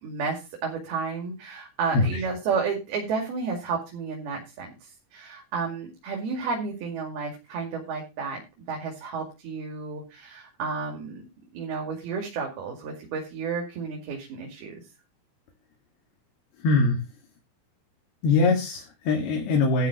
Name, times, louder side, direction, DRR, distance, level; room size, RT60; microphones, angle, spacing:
voice 1, 0.0-8.4 8.7-11.2 11.5-14.7, right 5 dB, 80° right, 0 dB, 4.2 m, -32 dB
voice 2, 16.6-17.0 18.2-19.9, left 3 dB, 80° left, 0 dB, 4.2 m, -22 dB
13.0 x 4.8 x 6.9 m, 0.27 s
omnidirectional pair, 4.4 m